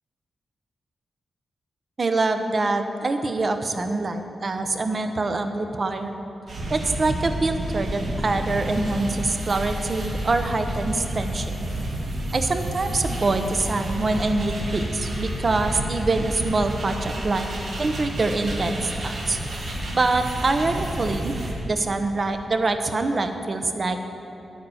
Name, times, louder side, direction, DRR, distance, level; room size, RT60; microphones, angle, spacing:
voice 1, 2.0-6.2 6.7-11.5 12.3-17.5 17.8-19.4 19.9-21.3 21.6-24.0, right 3 dB, 40° right, 7 dB, 0.8 m, -25 dB
sound 1, 6.5-21.5, right 1 dB, 75° right, 2.1 m, -30 dB
9.8 x 9.3 x 6.3 m, 2.9 s
wide cardioid pair, 110°, 0 cm